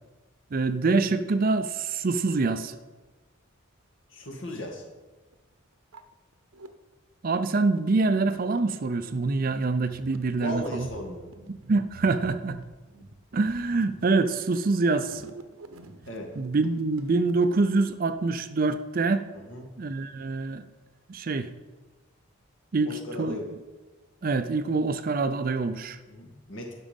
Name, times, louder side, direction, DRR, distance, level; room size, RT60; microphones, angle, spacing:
voice 1, 0.5-2.7 7.2-10.9 11.7-12.6 13.3-15.2 16.4-19.2 19.8-20.6 21.1-21.5 22.7-23.4 24.2-26.0, right 3 dB, 45° right, 11 dB, 0.5 m, -25 dB
voice 2, 4.1-4.8 10.3-11.3 16.1-16.3 19.3-19.7 22.8-23.5 26.1-26.7, equal, 65° left, 1 dB, 2.1 m, -36 dB
sound 1, 5.3-5.4 5.7-6.7 7.3-18.2, right 3 dB, 85° right, 0.8 m, -48 dB
11.0 x 6.2 x 5.2 m, 1.2 s
head